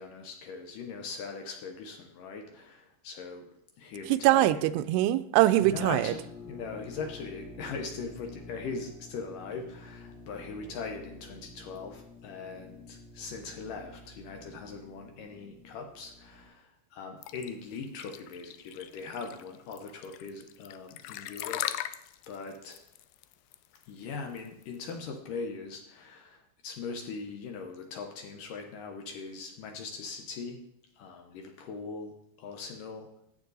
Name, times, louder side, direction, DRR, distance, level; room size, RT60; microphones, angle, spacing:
voice 1, 0.0-3.5 3.8-4.6 5.7-21.6 22.3-22.8 23.9-30.6 31.0-33.1, left 4 dB, 70° left, 4 dB, 2.1 m, -40 dB
voice 2, 4.1-6.1, right 14 dB, 90° right, 13 dB, 2.7 m, -23 dB
sound 1, 5.6-16.5, left 2 dB, 50° left, 2.6 m, -49 dB
sound 2, 17.2-24.9, left 13 dB, 90° left, 2.0 m, -39 dB
13.5 x 8.0 x 4.0 m, 0.77 s
omnidirectional pair, 4.7 m